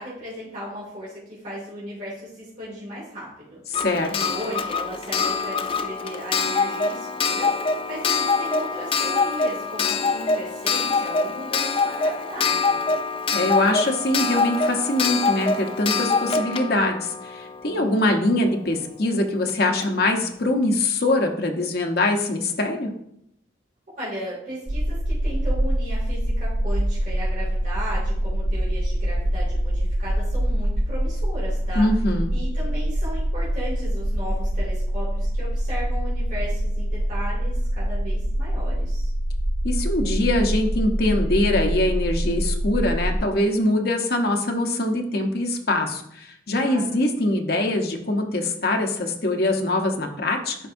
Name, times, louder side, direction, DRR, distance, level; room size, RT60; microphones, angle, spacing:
voice 1, 0.0-12.8 17.7-17.9 24.0-31.9 32.3-39.1 46.6-47.0, equal, 40° right, -8 dB, 2.5 m, -36 dB
voice 2, 3.7-4.1 13.3-22.9 31.7-32.3 39.6-50.5, left 1 dB, 55° left, 2 dB, 1.0 m, -23 dB
Clock, 3.7-18.3 19.5-19.6 19.8-19.9, left 4 dB, 30° left, 0.4 m, -25 dB
sound 1, 24.7-43.2, equal, 75° right, 0.7 m, -25 dB
11.0 x 4.6 x 2.7 m, 0.73 s
head